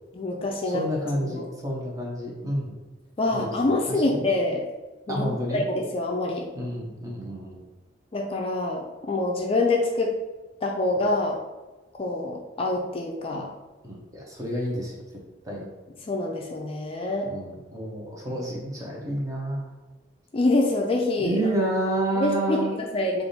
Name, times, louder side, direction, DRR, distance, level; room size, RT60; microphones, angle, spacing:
voice 1, 0.1-0.8 1.3-1.5 3.2-4.6 5.1-6.5 8.1-10.1 10.6-11.4 12.0-13.5 16.1-17.3 20.3-21.4 22.2-23.2, left 2 dB, 30° left, 0 dB, 0.4 m, -26 dB
voice 2, 0.7-2.7 3.4-3.5 3.9-4.2 5.1-5.6 6.5-7.6 13.8-15.0 15.4-15.6 17.3-19.7 21.2-22.7, right 1 dB, 20° right, -3 dB, 0.8 m, -29 dB
3.4 x 2.5 x 4.0 m, 1.2 s
head